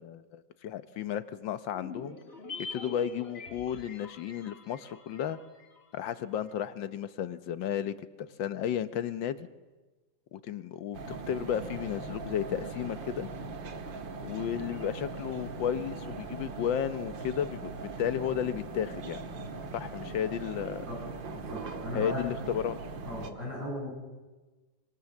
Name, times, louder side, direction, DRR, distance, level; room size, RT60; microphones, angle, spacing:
voice 1, 0.0-2.2 2.7-5.4 5.9-9.5 10.3-13.3 14.2-19.2 19.7-20.8 21.9-22.8, left 9 dB, 80° left, 13 dB, 1.7 m, -33 dB
sound 1, 1.7-6.2 6.5-6.6, left 4 dB, 30° left, 2.6 m, -45 dB
sound 2, 10.9-23.3, right 3 dB, 85° right, 2.2 m, -40 dB
voice 2, 21.3-22.2 23.1-23.9, left 1 dB, 55° right, -3 dB, 8.7 m, -37 dB
25.0 x 22.5 x 7.2 m, 1.2 s
omnidirectional pair, 2.0 m